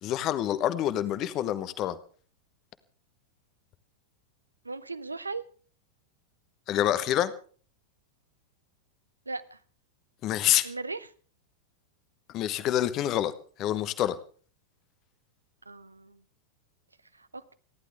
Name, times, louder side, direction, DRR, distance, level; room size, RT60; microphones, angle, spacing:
voice 1, 0.0-2.0 6.7-7.3 10.2-10.7 12.3-13.3 13.6-14.2, left 12 dB, 35° left, 13 dB, 1.1 m, -27 dB
voice 2, 4.6-5.4 9.3-9.6 10.6-11.1 15.7-16.2 17.1-17.5, right 3 dB, 80° right, 15 dB, 0.9 m, -38 dB
29.5 x 11.5 x 3.5 m, 0.42 s
figure-of-eight pair, 90°, 0 cm